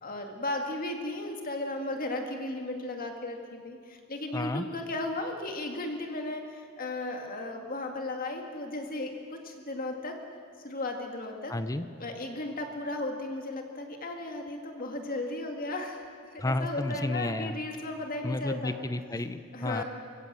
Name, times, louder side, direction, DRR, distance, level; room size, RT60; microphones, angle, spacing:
voice 1, 0.0-10.1 10.6-11.5 12.0-16.1 16.3-18.8 19.5-19.8, left 2 dB, 40° left, 3 dB, 2.1 m, -35 dB
voice 2, 4.3-4.7 11.5-11.9 16.4-17.6 18.2-19.8, left 1 dB, 15° left, 11 dB, 0.7 m, -31 dB
24.0 x 16.5 x 7.6 m, 2.2 s
head